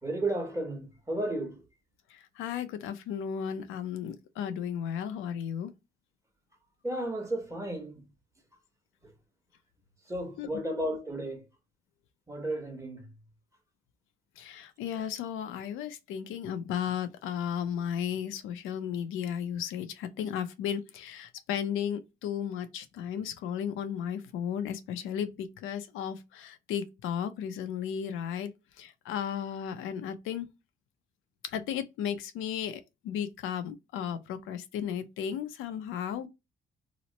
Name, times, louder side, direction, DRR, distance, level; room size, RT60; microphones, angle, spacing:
voice 1, 0.0-1.7 6.8-8.0 9.0-9.1 10.1-11.5 12.3-13.1, right 1 dB, 15° right, 1.1 m, -33 dB
voice 2, 2.1-5.7 10.4-10.5 14.4-28.5 28.8-30.5 31.4-36.3, left 8 dB, 90° left, 0.5 m, -34 dB
3.0 x 2.1 x 3.9 m
cardioid pair, 90°, 20 cm